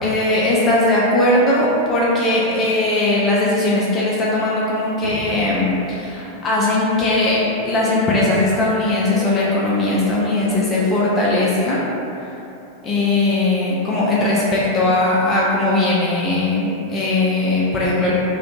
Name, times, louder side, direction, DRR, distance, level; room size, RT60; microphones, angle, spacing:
voice 1, 0.0-11.8 12.8-18.1, left 2 dB, 25° left, -6 dB, 0.4 m, -19 dB
sound 1, 4.9-6.2 11.0-11.1, right 1 dB, 85° left, 0.5 m, -35 dB
2.5 x 2.3 x 2.6 m, 2.8 s
figure-of-eight pair, 90°, 0 cm